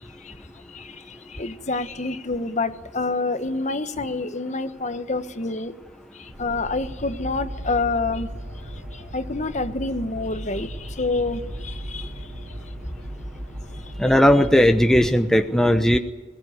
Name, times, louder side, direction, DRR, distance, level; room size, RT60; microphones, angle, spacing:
voice 1, 0.7-5.7 6.2-8.3 8.9-12.1 15.9-16.0, left 3 dB, 40° left, 10 dB, 1.3 m, -28 dB
sound 1, 6.3-14.8, equal, 80° right, 4.8 m, -36 dB
voice 2, 14.0-16.0, equal, 5° left, 7 dB, 0.8 m, -17 dB
21.5 x 18.0 x 9.5 m, 1.2 s
head